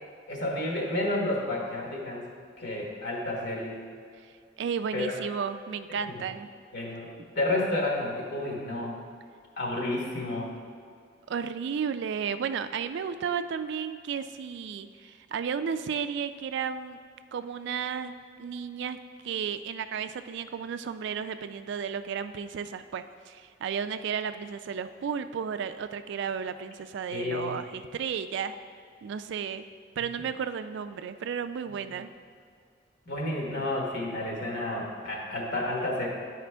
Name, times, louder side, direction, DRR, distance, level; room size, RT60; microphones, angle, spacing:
voice 1, 0.3-2.3 2.6-3.8 4.9-5.2 6.1-6.2 6.7-7.1 7.3-9.0 9.6-10.5 27.1-27.6 31.7-31.8 33.1-36.1, left 1 dB, 60° left, -2 dB, 1.3 m, -31 dB
voice 2, 4.6-6.5 7.2-7.3 11.3-17.0 17.3-19.0 19.2-28.6 29.0-29.6 30.0-32.1, right 7 dB, 65° right, 10 dB, 0.3 m, -33 dB
9.1 x 5.0 x 3.3 m, 2.2 s
head